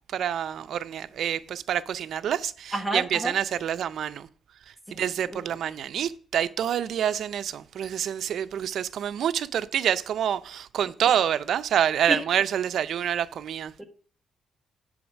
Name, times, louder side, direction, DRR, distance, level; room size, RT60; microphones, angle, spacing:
voice 1, 0.1-4.3 4.9-13.7, right 9 dB, 65° right, 0.5 m, -27 dB
voice 2, 2.7-3.3 4.9-5.0 5.3-5.4 12.1-12.2 13.8-13.9, right 2 dB, 5° left, 1.4 m, -29 dB
8.6 x 4.9 x 7.2 m
cardioid pair, 140°, 0 cm